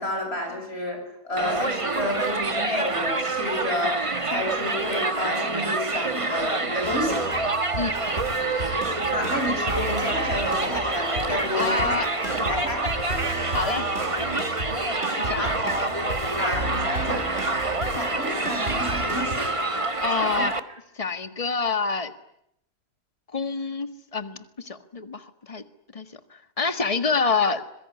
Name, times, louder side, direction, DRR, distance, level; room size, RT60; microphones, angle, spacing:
voice 1, 0.0-7.2 8.9-12.9 15.4-15.6 16.4-17.6 18.0-19.9 20.2-20.4, left 1 dB, 45° left, 4 dB, 8.0 m, -30 dB
Crowd, 1.4-20.6, right 3 dB, 25° right, 1.4 m, -27 dB
sound 1, 6.8-19.4, right 1 dB, 45° right, 4.3 m, -34 dB
voice 2, 11.5-12.1 13.5-13.9 15.2-15.9 16.3-16.4 20.0-20.6 20.9-22.1 23.3-25.6 25.9-27.6, left 4 dB, 25° left, 10 dB, 1.7 m, -27 dB
26.0 x 23.0 x 9.8 m, 0.76 s
omnidirectional pair, 1.5 m